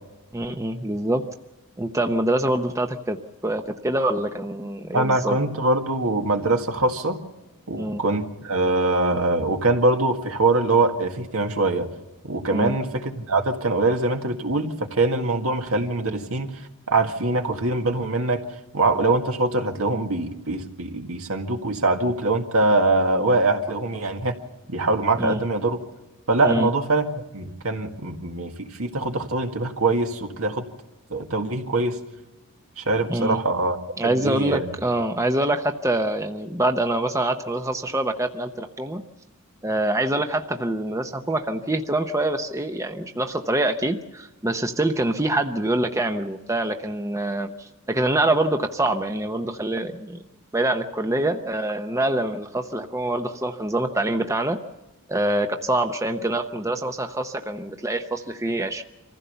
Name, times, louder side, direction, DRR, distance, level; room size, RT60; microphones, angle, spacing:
voice 1, 0.3-1.2 1.8-5.4 7.8-8.0 12.5-12.8 25.2-25.4 26.4-26.7 33.1-33.4 34.0-39.0 39.6-50.2 50.5-54.6 55.1-58.8, right 1 dB, 15° right, 6 dB, 0.7 m, -25 dB
voice 2, 4.9-7.2 7.7-11.9 12.2-16.5 16.9-18.4 18.7-24.3 24.7-25.8 26.3-27.1 27.3-30.6 31.1-32.0 32.8-33.8 34.0-34.7, right 2 dB, 75° right, 4 dB, 1.9 m, -23 dB
25.0 x 15.5 x 6.9 m, 1.1 s
head